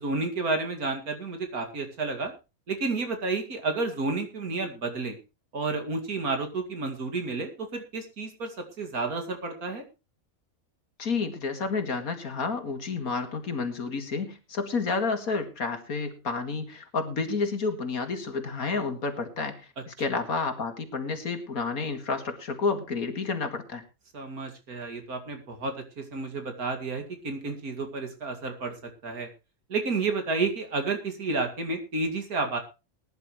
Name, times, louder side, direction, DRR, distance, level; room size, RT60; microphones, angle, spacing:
voice 1, 0.0-2.3 2.7-5.2 5.5-9.8 24.1-28.7 29.0-29.3 29.7-32.6, right 3 dB, 85° right, 5 dB, 2.8 m, -31 dB
voice 2, 11.0-23.8, left 4 dB, 75° left, 7 dB, 2.5 m, -30 dB
20.0 x 10.5 x 3.1 m, 0.29 s
omnidirectional pair, 1.5 m